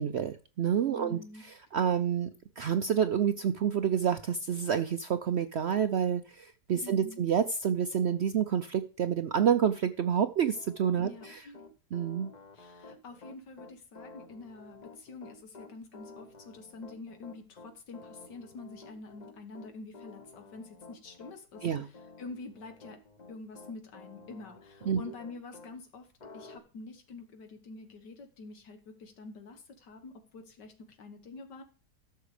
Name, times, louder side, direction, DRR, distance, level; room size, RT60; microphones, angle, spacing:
voice 1, 0.0-1.2 1.7-2.3 2.6-11.4 11.9-12.3 21.6-21.9 24.9-25.0, right 8 dB, 70° right, 10 dB, 0.6 m, -28 dB
voice 2, 1.0-1.4 6.8-7.2 11.0-11.7 12.5-23.0 23.3-26.1 26.3-31.6, left 3 dB, 85° left, 6 dB, 2.0 m, -47 dB
Piano, 10.5-25.7 26.2-26.6, left 3 dB, 30° left, 0.9 m, -51 dB
13.0 x 6.6 x 4.9 m, 0.36 s
omnidirectional pair, 1.8 m